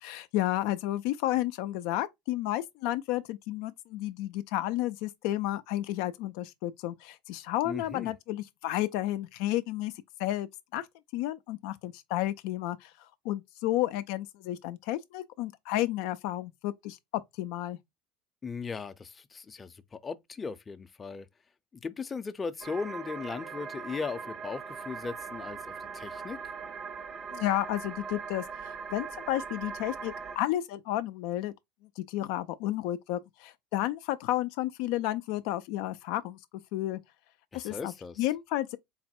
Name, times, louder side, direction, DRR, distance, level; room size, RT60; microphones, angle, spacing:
voice 1, 0.0-9.9 10.2-10.9 11.1-12.9 13.2-17.0 17.4-17.8 27.3-31.5 32.0-36.4 36.7-37.0 37.5-37.9 38.2-38.8, left 14 dB, 70° left, 0.4 m, -32 dB
voice 2, 7.6-8.1 18.4-21.3 21.7-26.5 37.5-38.3, left 5 dB, 25° left, 0.6 m, -38 dB
sound 1, 22.6-30.4, right 5 dB, 40° right, 0.6 m, -40 dB
4.0 x 2.1 x 4.2 m
hypercardioid pair, 85°, 0 cm